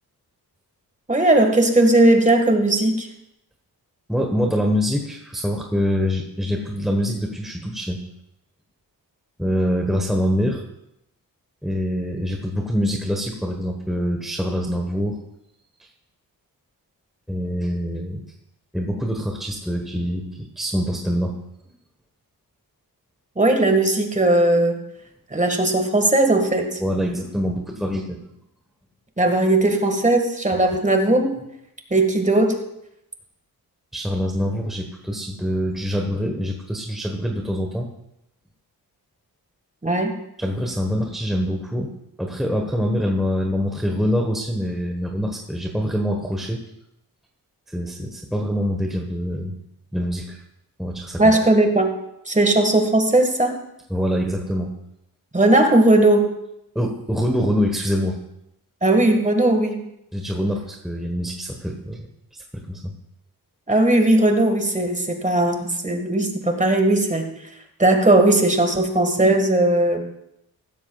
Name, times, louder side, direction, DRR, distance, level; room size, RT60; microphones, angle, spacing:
voice 1, 1.1-3.1 23.3-24.8 25.3-26.8 29.2-31.3 31.9-32.6 39.8-40.1 51.2-51.9 52.3-53.6 55.3-56.3 58.8-59.8 63.7-67.3 67.8-70.0, right 2 dB, 20° right, 4 dB, 1.7 m, -18 dB
voice 2, 4.1-8.0 9.4-10.6 11.6-15.2 17.3-18.2 18.7-21.4 26.8-28.2 30.5-30.8 33.9-37.9 40.4-41.9 42.2-46.6 47.7-49.5 49.9-50.4 50.8-51.2 53.9-54.7 56.7-58.2 60.1-62.1 62.3-62.9, equal, ahead, 1 dB, 1.2 m, -25 dB
15.5 x 13.0 x 2.4 m, 0.82 s
wide cardioid pair, 90°, 38 cm